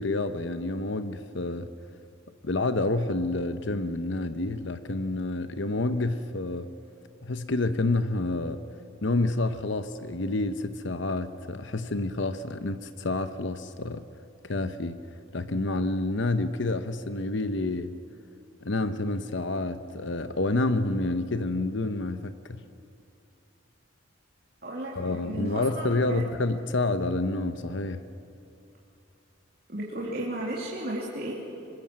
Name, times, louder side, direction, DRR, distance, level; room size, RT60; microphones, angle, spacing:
voice 1, 0.0-1.7 2.4-6.7 7.2-8.6 9.0-14.1 14.4-15.0 15.3-18.0 18.6-22.6 25.0-28.0, left 2 dB, 60° left, 11 dB, 0.9 m, -28 dB
voice 2, 24.6-26.2 29.7-31.4, right 1 dB, 45° right, -4 dB, 2.8 m, -34 dB
25.5 x 21.5 x 7.6 m, 2.8 s
head